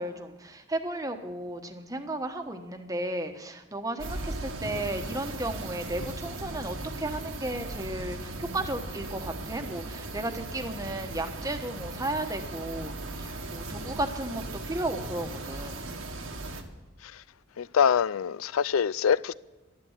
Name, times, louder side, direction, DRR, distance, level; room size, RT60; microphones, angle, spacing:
voice 1, 0.0-15.8, right 1 dB, 15° right, 1.2 m, -34 dB
sound 1, 4.0-16.6, right 2 dB, 80° right, 1.7 m, -38 dB
voice 2, 17.6-19.3, left 7 dB, 85° left, 0.4 m, -24 dB
13.5 x 11.0 x 7.3 m
head